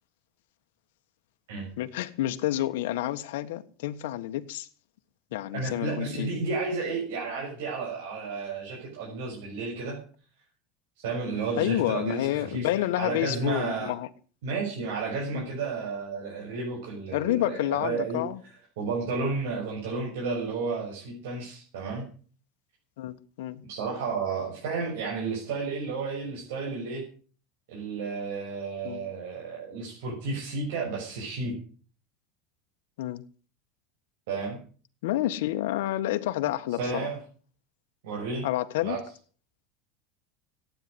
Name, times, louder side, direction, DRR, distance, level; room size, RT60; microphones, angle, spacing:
voice 1, 1.8-4.7 5.3-6.3 11.6-14.1 15.3-15.5 17.1-18.4 23.0-23.6 28.8-29.0 33.0-33.2 35.0-37.1 38.4-39.0, left 14 dB, 90° left, 1.4 m, -29 dB
voice 2, 5.5-10.0 11.0-12.7 13.0-13.9 14.4-18.2 18.8-22.0 23.7-27.0 27.7-31.5 34.3-34.6 36.8-37.2 38.0-38.5 38.8-39.0, right 4 dB, 85° right, 6.4 m, -32 dB
16.0 x 9.6 x 7.8 m
supercardioid pair, 160°, 0 cm